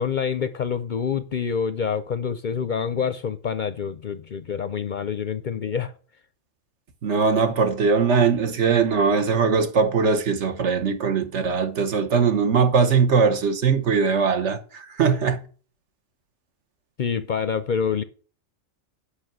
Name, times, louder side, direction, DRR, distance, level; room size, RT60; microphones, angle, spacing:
voice 1, 0.0-5.9 17.0-18.0, left 7 dB, 55° left, 0.6 m, -26 dB
voice 2, 7.0-15.4, right 5 dB, 65° right, 1.4 m, -21 dB
8.3 x 5.8 x 7.5 m
omnidirectional pair, 1.3 m